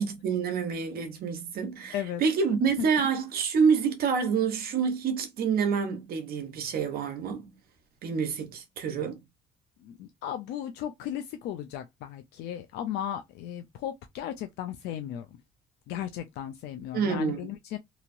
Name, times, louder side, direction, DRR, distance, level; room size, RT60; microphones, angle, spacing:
voice 1, 0.0-7.6 8.0-9.2 16.9-17.5, right 6 dB, 65° right, 0.9 m, -27 dB
voice 2, 9.8-15.3 15.9-17.8, left 10 dB, 80° left, 0.4 m, -35 dB
3.0 x 2.7 x 2.6 m
cardioid pair, 110°, 17 cm